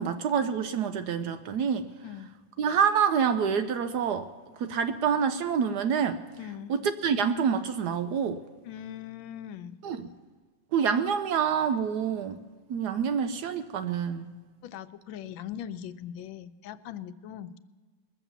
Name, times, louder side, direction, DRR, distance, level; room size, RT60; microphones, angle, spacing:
voice 1, 0.0-1.9 2.6-4.3 4.6-6.2 6.7-8.4 9.8-10.1 10.7-12.4 12.7-14.3, right 7 dB, 70° right, 10 dB, 1.0 m, -27 dB
voice 2, 6.4-6.7 8.6-9.8 14.6-17.6, left 10 dB, 80° left, 12 dB, 1.3 m, -40 dB
21.0 x 7.3 x 7.0 m, 1.4 s
omnidirectional pair, 2.1 m